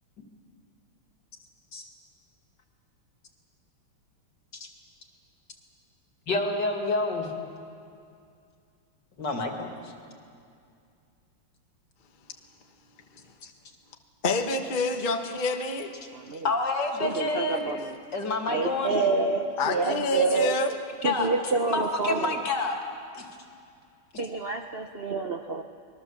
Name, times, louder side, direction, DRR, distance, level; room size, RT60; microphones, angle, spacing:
voice 1, 6.3-7.3 9.2-9.9 16.4-17.6 18.1-18.9 21.0-21.3 21.7-22.7 23.2-23.3, left 3 dB, 55° left, 2 dB, 3.0 m, -28 dB
voice 2, 14.2-15.9 19.6-20.7, left 2 dB, 30° left, 4 dB, 1.1 m, -27 dB
voice 3, 16.1-16.5 17.0-18.0 18.5-20.6 21.0-22.4 24.2-25.6, right 3 dB, 75° right, 5 dB, 0.5 m, -28 dB
25.0 x 21.5 x 7.4 m, 2.4 s
omnidirectional pair, 2.4 m